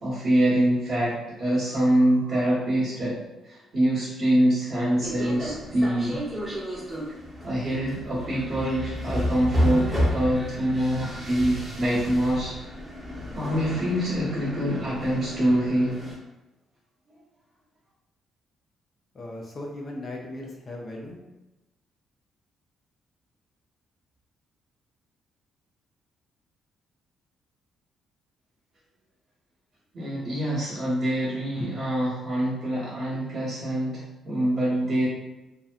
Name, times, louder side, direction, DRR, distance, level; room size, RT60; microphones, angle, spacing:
voice 1, 0.0-3.2 3.4-6.2 7.4-12.5 13.3-16.0 29.9-35.1, right 1 dB, 55° right, -12 dB, 1.0 m, -25 dB
sound 1, 5.0-16.1, equal, 20° right, 0.8 m, -31 dB
voice 2, 19.1-21.2, left 1 dB, 40° left, -1 dB, 0.4 m, -37 dB
2.7 x 2.1 x 2.4 m, 1.0 s
cardioid pair, 90°, 0 cm